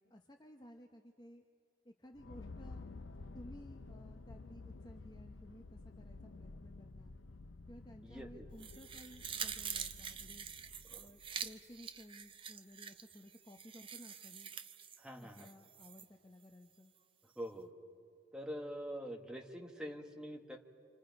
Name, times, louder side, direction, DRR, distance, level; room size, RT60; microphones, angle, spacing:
voice 1, 0.0-1.4 1.8-2.9 3.3-7.2 7.7-10.5 10.9-14.5 15.2-16.9, equal, 20° left, 3 dB, 0.8 m, -56 dB
sound 1, 2.1-11.7, left 3 dB, 75° left, 0.7 m, -52 dB
voice 2, 8.0-8.5 10.9-11.1 15.0-15.5 17.4-17.7 18.3-20.6, equal, 5° right, 2 dB, 1.4 m, -45 dB
sound 2, 8.6-16.1 16.4-16.5, right 7 dB, 25° right, 0.6 m, -46 dB
28.5 x 26.5 x 5.3 m, 2.3 s
head